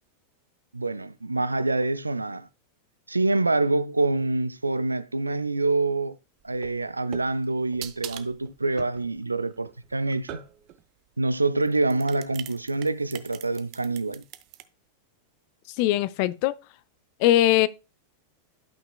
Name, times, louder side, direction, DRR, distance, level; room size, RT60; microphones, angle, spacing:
voice 1, 0.7-2.5 3.1-6.2 6.4-10.4 11.2-14.2, right 2 dB, 80° right, 0.4 m, -26 dB
sound 1, 6.5-10.8 11.6-14.6, right 12 dB, 40° right, 0.6 m, -42 dB
voice 2, 15.7-16.5 17.2-17.7, left 14 dB, 45° left, 0.4 m, -21 dB
11.5 x 5.8 x 2.2 m
figure-of-eight pair, 90°, 0 cm